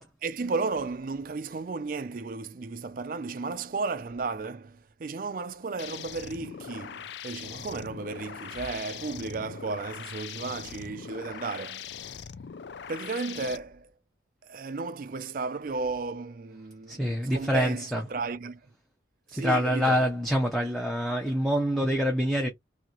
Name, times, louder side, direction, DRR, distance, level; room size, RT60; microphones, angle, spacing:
voice 1, 0.0-12.2 12.9-13.9 14.4-18.7 19.3-20.1, right 4 dB, 45° right, 0.4 m, -34 dB
sound 1, 5.8-13.6, left 8 dB, 65° left, 0.4 m, -41 dB
voice 2, 16.9-18.0 19.3-22.5, equal, ahead, 0.6 m, -26 dB
2.9 x 2.7 x 3.9 m
head